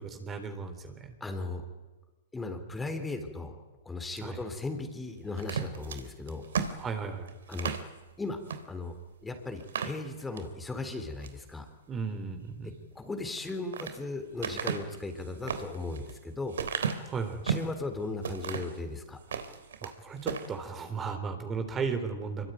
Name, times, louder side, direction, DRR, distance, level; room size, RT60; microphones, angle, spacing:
voice 1, 0.0-1.1 4.2-4.4 6.8-7.3 11.9-12.7 17.1-17.4 19.8-22.5, right 5 dB, 20° right, 7 dB, 3.8 m, -35 dB
voice 2, 1.2-1.6 2.3-3.6 3.9-6.4 7.5-7.7 8.2-8.4 8.7-8.9 9.2-11.7 13.0-16.6 17.4-19.2, left 2 dB, 10° left, 6 dB, 3.8 m, -37 dB
sound 1, 5.4-7.9 8.4-8.6 9.0-9.1 9.6-10.5 11.0-11.4 13.2-14.0 14.4-17.8 18.2-18.8 19.2-19.9 20.2-20.5, right 7 dB, 75° right, 3.4 m, -34 dB
25.5 x 23.5 x 9.5 m, 1.2 s
hypercardioid pair, 125°, 0 cm